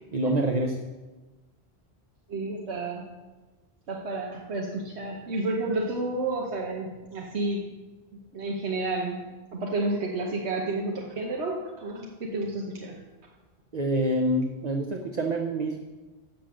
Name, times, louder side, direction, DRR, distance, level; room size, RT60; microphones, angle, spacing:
voice 1, 0.1-0.8 13.7-15.8, right 1 dB, 45° right, 3 dB, 0.8 m, -26 dB
voice 2, 2.3-3.1 3.9-7.7 8.3-9.2 9.5-13.0, right 2 dB, 90° right, -1 dB, 1.3 m, -31 dB
7.5 x 6.8 x 7.5 m, 1.2 s
omnidirectional pair, 1.1 m